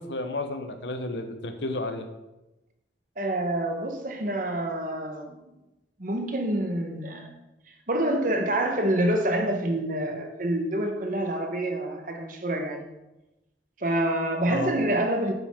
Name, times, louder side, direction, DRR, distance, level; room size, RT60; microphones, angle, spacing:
voice 1, 0.0-2.1 14.5-14.7, left 2 dB, 85° left, 1.1 m, -32 dB
voice 2, 3.2-5.4 6.0-7.3 7.9-12.9 13.8-15.3, right 1 dB, 50° right, 1.2 m, -27 dB
9.2 x 8.2 x 3.7 m
head